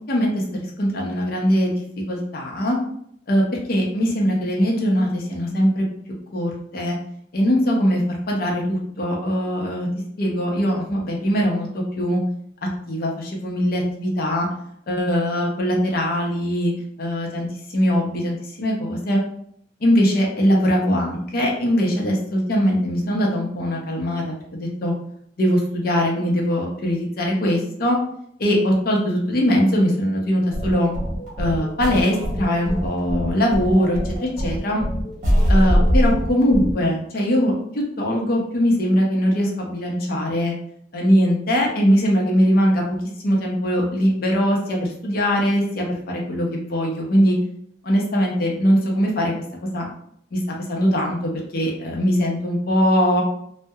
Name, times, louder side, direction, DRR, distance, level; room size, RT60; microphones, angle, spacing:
voice 1, 0.1-0.4 0.8-1.8 2.1-2.8 3.3-3.4 3.7-5.8 6.3-7.0 7.3-8.0 8.3-9.9 10.2-12.2 12.9-14.5 14.9-16.7 17.0-17.5 17.7-19.2 19.8-24.2 24.5-24.9 25.4-28.0 28.4-30.9 31.4-34.8 35.5-40.5 40.9-43.0 43.2-47.4 47.8-49.3 49.7-49.9 50.3-53.2, equal, 55° left, -1 dB, 0.6 m, -21 dB
sound 1, 30.5-36.7, equal, 45° right, 1.3 m, -22 dB
2.7 x 2.1 x 2.3 m, 0.69 s
head